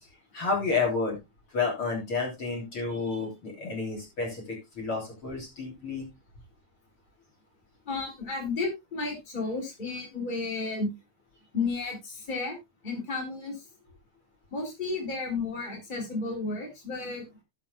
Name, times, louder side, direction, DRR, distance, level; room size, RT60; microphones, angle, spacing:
voice 1, 0.3-1.2 1.5-6.1, left 4 dB, 45° left, -1 dB, 3.9 m, -30 dB
voice 2, 7.8-10.9 11.5-12.6 12.8-13.6 14.5-17.2, left 3 dB, 15° left, 0 dB, 3.5 m, -32 dB
18.5 x 6.2 x 2.3 m, 0.22 s
omnidirectional pair, 3.4 m